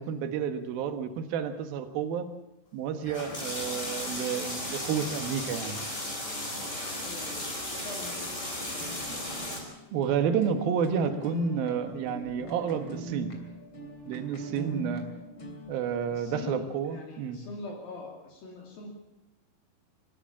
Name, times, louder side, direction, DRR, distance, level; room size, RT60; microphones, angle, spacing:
voice 1, 0.0-2.3 2.7-5.8 9.1-9.2 9.9-13.3 14.1-15.0 15.7-17.4, right 7 dB, 75° right, 8 dB, 3.2 m, -30 dB
sound 1, 3.0-9.6, left 1 dB, 20° left, 4.9 m, -35 dB
voice 2, 7.0-7.4 7.7-9.3 16.1-18.9, left 3 dB, 70° left, 0 dB, 4.5 m, -43 dB
sound 2, 8.6-16.3, right 2 dB, 35° left, 3.6 m, -41 dB
24.5 x 13.5 x 8.6 m, 0.96 s
omnidirectional pair, 4.4 m